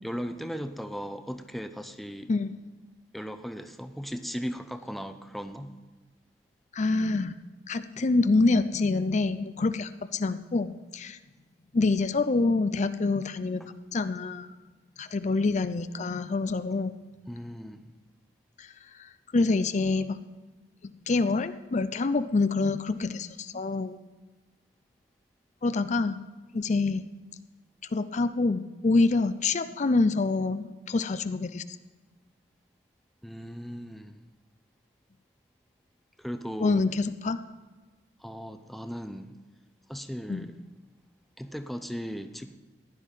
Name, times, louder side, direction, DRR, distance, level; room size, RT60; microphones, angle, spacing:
voice 1, 0.0-2.3 3.1-5.8 13.6-13.7 17.3-17.8 33.2-34.2 36.2-36.8 38.2-39.3 39.9-40.6 41.4-42.6, equal, ahead, 8 dB, 0.6 m, -37 dB
voice 2, 6.7-7.4 7.7-11.2 11.7-13.6 13.9-14.5 15.0-17.0 18.6-18.7 19.3-20.2 21.1-24.0 25.6-26.2 26.5-27.2 27.9-31.6 36.6-37.4 40.3-40.5, left 3 dB, 40° left, 12 dB, 0.5 m, -26 dB
15.5 x 10.5 x 5.6 m, 1.3 s
head